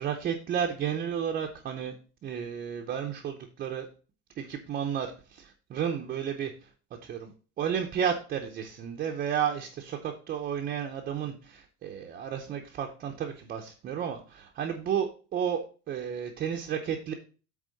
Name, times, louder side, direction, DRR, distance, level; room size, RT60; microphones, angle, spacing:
voice 1, 0.0-2.0 2.2-3.9 4.4-6.7 7.0-17.1, right 8 dB, 25° right, 3 dB, 0.6 m, -32 dB
8.3 x 3.6 x 6.3 m, 0.36 s
cardioid pair, 175°, 38 cm